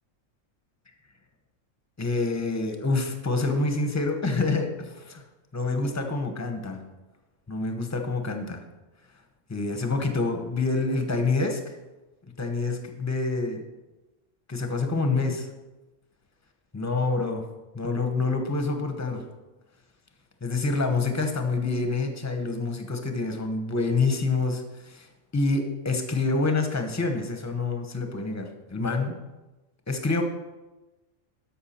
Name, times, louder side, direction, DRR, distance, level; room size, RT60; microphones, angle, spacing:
voice 1, 2.0-5.2 5.5-6.8 7.5-8.6 9.5-11.6 12.4-13.6 14.5-15.5 16.7-17.4 17.7-19.2 20.4-25.1 25.3-29.2 29.9-30.2, left 3 dB, 15° left, 5 dB, 0.8 m, -27 dB
13.0 x 5.7 x 4.3 m, 1.1 s
omnidirectional pair, 1.3 m